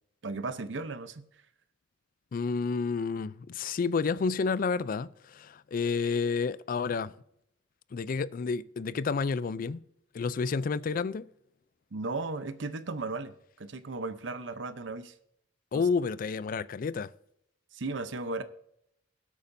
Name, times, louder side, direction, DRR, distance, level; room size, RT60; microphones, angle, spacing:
voice 1, 0.2-1.3 11.9-15.1 15.7-15.8 17.7-18.4, right 3 dB, 75° right, 0.7 m, -36 dB
voice 2, 2.3-7.1 7.9-9.8 10.1-11.3 15.7-17.1, left 5 dB, 50° left, 0.4 m, -30 dB
20.5 x 8.4 x 2.6 m
head